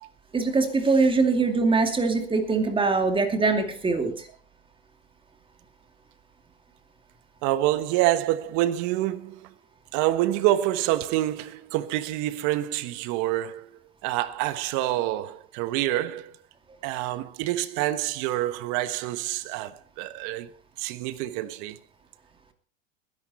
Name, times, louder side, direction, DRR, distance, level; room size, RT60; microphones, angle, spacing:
voice 1, 0.3-4.3, right 4 dB, 15° right, 2.5 m, -23 dB
voice 2, 7.4-9.5 9.9-13.7 14.0-16.3 16.8-20.5 20.8-21.8, right 14 dB, 55° right, 1.3 m, -27 dB
21.0 x 10.5 x 4.3 m
supercardioid pair, 120°, 36 cm